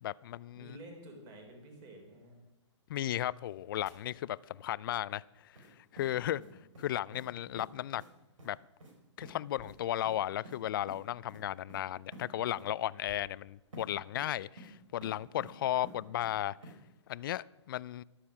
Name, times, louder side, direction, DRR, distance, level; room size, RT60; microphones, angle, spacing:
voice 1, 0.0-0.7 2.9-5.5 5.9-6.4 6.8-8.0 8.4-8.6 9.2-16.6 17.1-18.0, left 13 dB, 45° left, 0.4 m, -35 dB
voice 2, 0.6-2.3 6.2-6.6 15.7-15.9, right 1 dB, 25° right, 3.9 m, -51 dB
Oven Grinds Squeaks and Bangs, 3.8-5.0 5.3-5.4 9.6-11.9 13.0-15.8, left 7 dB, 15° left, 2.2 m, -65 dB
sound 1, 5.6-5.7 6.0-6.9 7.1-7.3 7.6-7.7 8.0-8.1 8.4-8.5 8.8-8.9 9.2-9.3 9.6-9.7 10.0-10.6 10.9-11.0 11.3-11.4 11.7-11.8 12.1-12.2 12.5-12.6 13.7-13.8 14.2-14.7 15.0-15.5 15.8-16.4 16.6-16.8, right 1 dB, 85° right, 4.4 m, -50 dB
13.5 x 11.5 x 5.9 m
hypercardioid pair, 150°, 16 cm